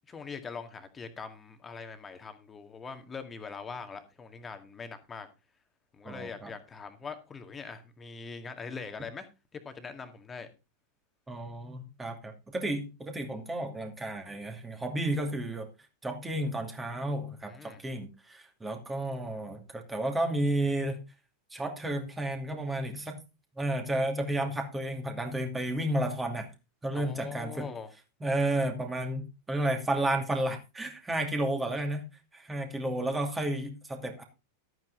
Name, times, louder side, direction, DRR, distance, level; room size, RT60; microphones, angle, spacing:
voice 1, 0.1-5.3 5.9-9.3 9.5-10.5 17.4-17.8 26.9-27.9, left 5 dB, 20° left, 8 dB, 2.1 m, -42 dB
voice 2, 6.0-6.5 11.3-15.7 16.0-21.0 21.5-23.2 23.6-26.5 26.8-27.7 28.2-32.0 32.3-34.2, right 1 dB, 10° right, 4 dB, 2.6 m, -32 dB
13.0 x 9.1 x 3.9 m, 0.28 s
figure-of-eight pair, 90°, 0 cm